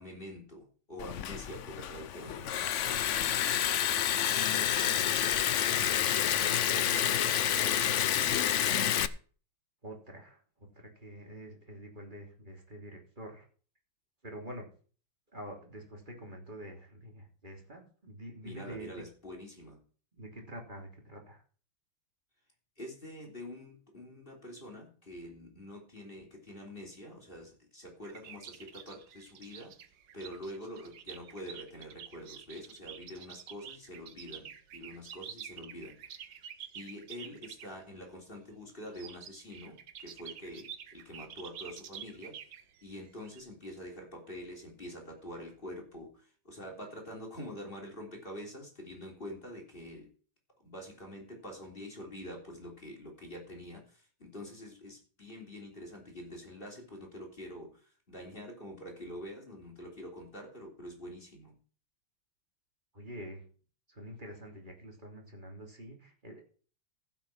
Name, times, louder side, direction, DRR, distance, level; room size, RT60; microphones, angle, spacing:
voice 1, 0.0-4.1 18.4-19.8 22.8-29.7 30.1-36.4 36.7-42.4 42.8-50.1 50.6-61.5, equal, 25° left, 1 dB, 3.5 m, -46 dB
Liquid, 1.0-9.1, left 10 dB, 80° left, 0.6 m, -29 dB
voice 2, 4.4-8.9 9.8-10.4 10.7-13.5 14.2-14.7 15.3-18.9 20.2-21.4 62.9-63.4 63.9-66.4, equal, 25° right, 1 dB, 3.1 m, -47 dB
sound 1, 28.0-37.7 38.8-43.4, right 9 dB, 70° right, 1.7 m, -48 dB
15.0 x 6.2 x 5.9 m, 0.40 s
omnidirectional pair, 2.1 m